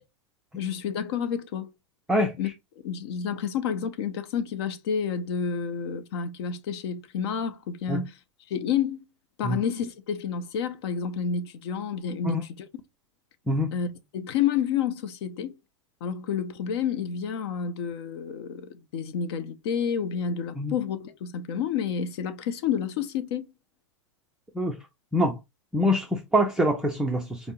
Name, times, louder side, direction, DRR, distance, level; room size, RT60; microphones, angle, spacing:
voice 1, 0.5-1.7 2.4-2.5 2.8-8.2 8.5-9.0 9.4-12.7 13.7-13.9 14.1-15.5 16.0-23.5, left 7 dB, 55° left, 0.7 m, -29 dB
voice 2, 25.7-27.4, equal, 5° right, 0.4 m, -24 dB
5.1 x 2.0 x 2.8 m
hypercardioid pair, 130°, 16 cm